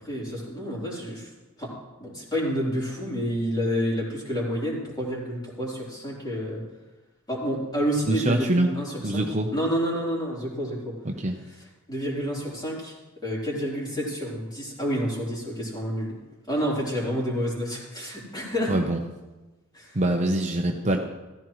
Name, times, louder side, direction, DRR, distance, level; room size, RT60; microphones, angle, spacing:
voice 1, 0.0-1.3 1.6-1.7 2.0-6.6 7.3-9.2 9.5-10.9 11.9-12.9 13.2-16.2 16.5-18.7 19.7-20.0, equal, 20° left, -5 dB, 3.8 m, -29 dB
voice 2, 8.1-8.7 9.0-9.5 11.0-11.3 18.7-19.0 19.9-21.0, right 1 dB, 30° right, 2 dB, 0.8 m, -24 dB
15.0 x 14.5 x 3.2 m, 1.1 s
head